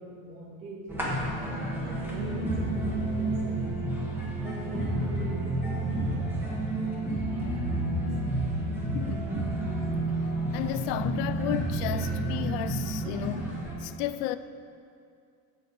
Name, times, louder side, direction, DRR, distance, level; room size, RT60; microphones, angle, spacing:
voice 1, 0.0-3.8 4.4-6.3 7.6-8.6 8.9-9.0, right 3 dB, 70° right, 2.3 m, -39 dB
sound 1, 0.9-13.7, right 2 dB, 5° right, 1.2 m, -30 dB
voice 2, 8.9-9.2 10.5-13.5 13.8-14.4, left 13 dB, 80° left, 0.6 m, -33 dB
13.0 x 7.4 x 4.0 m
cardioid pair, 175°, 41 cm